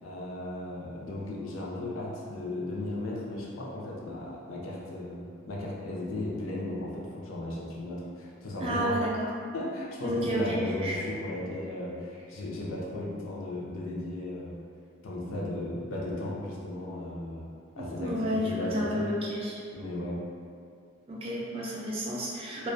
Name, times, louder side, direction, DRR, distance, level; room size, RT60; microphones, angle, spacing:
voice 1, 0.0-9.0 9.5-14.6 15.0-17.5 17.8-19.1 19.7-20.2, left 1 dB, 90° left, -4 dB, 0.5 m, -36 dB
voice 2, 8.6-9.3 10.0-11.0 17.8-19.5 21.1-22.7, equal, 30° right, -5 dB, 0.3 m, -31 dB
2.4 x 2.2 x 2.5 m, 2.3 s
head